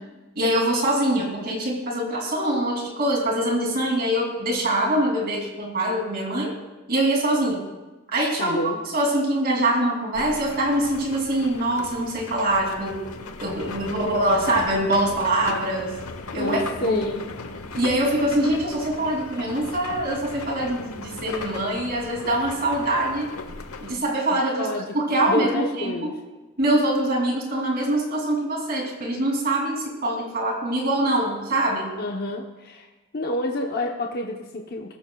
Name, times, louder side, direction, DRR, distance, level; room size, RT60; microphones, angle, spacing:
voice 1, 0.3-6.5 6.9-7.6 8.1-13.0 13.4-15.9 16.3-17.0 17.7-23.3 23.8-24.7 24.9-26.1 26.6-31.9, right 1 dB, 45° right, -1 dB, 3.0 m, -24 dB
voice 2, 8.4-8.8 16.3-17.2 24.3-26.2 32.0-32.9 33.1-34.9, left 1 dB, 45° left, 1 dB, 0.9 m, -29 dB
sound 1, 10.1-24.0, left 3 dB, 80° left, 1.0 m, -37 dB
21.0 x 13.5 x 2.4 m, 1.2 s
head